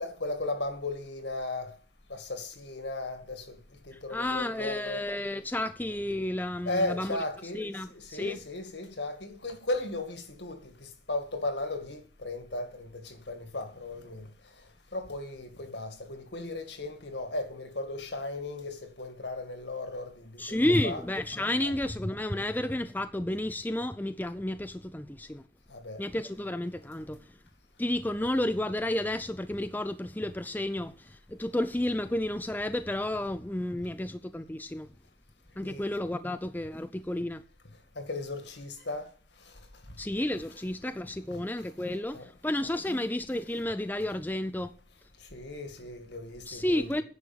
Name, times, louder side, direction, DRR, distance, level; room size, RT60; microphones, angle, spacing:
voice 1, 0.0-1.7 2.1-3.6 3.8-5.1 6.7-14.3 14.9-21.0 21.6-21.7 25.7-26.0 35.6-35.8 38.0-39.1 39.5-39.6 41.3-41.4 42.1-42.3 42.9-43.0 45.3-47.0, left 2 dB, 70° left, 2.2 m, -36 dB
voice 2, 4.1-7.2 7.5-8.4 20.4-25.4 26.0-27.2 27.8-34.9 35.6-37.4 40.0-44.7 46.5-47.0, left 1 dB, 10° left, 0.5 m, -31 dB
10.5 x 6.5 x 8.9 m
head